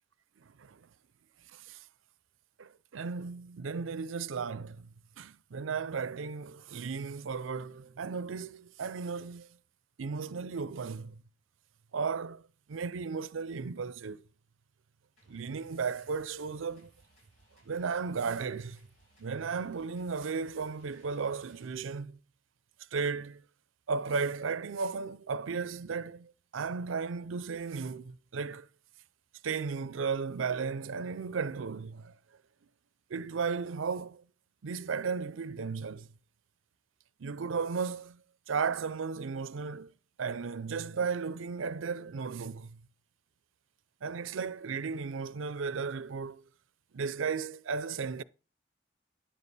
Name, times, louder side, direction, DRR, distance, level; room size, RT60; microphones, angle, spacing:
voice 1, 0.4-0.9 1.5-1.8 2.6-9.5 10.0-11.2 11.9-14.2 15.3-16.9 17.7-18.8 19.2-22.2 22.9-23.4 23.9-28.7 29.4-32.2 33.1-34.3 34.6-36.1 37.2-39.9 40.2-42.8 44.0-46.4 46.9-48.2, right 5 dB, 75° right, 0.5 m, -35 dB
sound 1, 15.2-21.7, right 2 dB, 85° left, 5.8 m, -64 dB
10.0 x 7.1 x 4.1 m
head